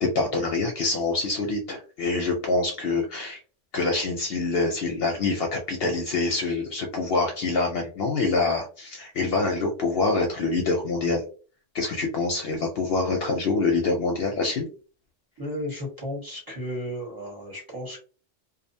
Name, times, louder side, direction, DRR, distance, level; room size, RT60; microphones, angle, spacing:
voice 1, 0.0-3.4 3.7-11.2 11.7-14.7, left 3 dB, 65° left, 2 dB, 0.7 m, -25 dB
voice 2, 15.4-18.0, left 1 dB, 20° right, -3 dB, 0.9 m, -34 dB
2.6 x 2.0 x 2.6 m, 0.38 s
omnidirectional pair, 1.2 m